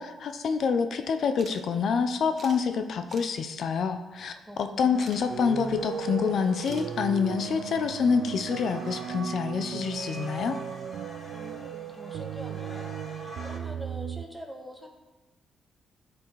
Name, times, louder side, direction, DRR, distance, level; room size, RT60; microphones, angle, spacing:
voice 1, 0.0-4.3 4.6-10.6, left 6 dB, 60° left, 8 dB, 0.8 m, -27 dB
sound 1, 1.4-1.6 1.9-2.0 2.3-2.6 3.1-3.3 5.0-5.2 6.6-6.9, right 4 dB, 40° right, 1.3 m, -47 dB
voice 2, 4.5-5.1 11.3-14.9, equal, 5° right, 1 dB, 1.8 m, -44 dB
sound 2, 4.9-13.6, equal, 30° left, 3.3 m, -47 dB
sound 3, 5.3-14.3, right 9 dB, 75° right, 0.4 m, -36 dB
14.5 x 6.2 x 4.8 m, 1.2 s
cardioid pair, 100°, 0 cm